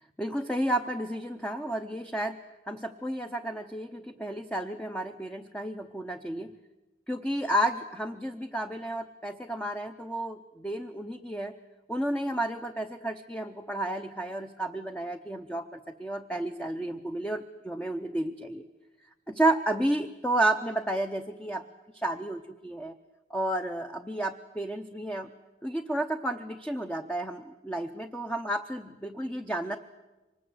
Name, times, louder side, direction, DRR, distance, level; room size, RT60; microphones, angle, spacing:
voice 1, 0.2-2.4 2.7-6.5 7.1-11.5 11.9-18.6 19.3-21.6 22.0-22.9 23.3-25.3 25.6-29.8, right 1 dB, 5° left, 6 dB, 0.8 m, -31 dB
25.0 x 20.0 x 8.0 m, 1.1 s
head